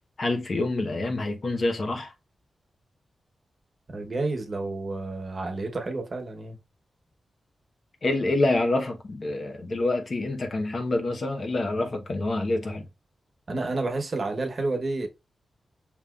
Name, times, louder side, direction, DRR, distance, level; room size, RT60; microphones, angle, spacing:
voice 1, 0.2-2.1 8.0-12.8, left 2 dB, 55° left, 1.1 m, -27 dB
voice 2, 3.9-6.6 13.5-15.1, right 2 dB, 50° right, 1.0 m, -30 dB
5.4 x 3.0 x 2.4 m
cardioid pair, 65°, 0 cm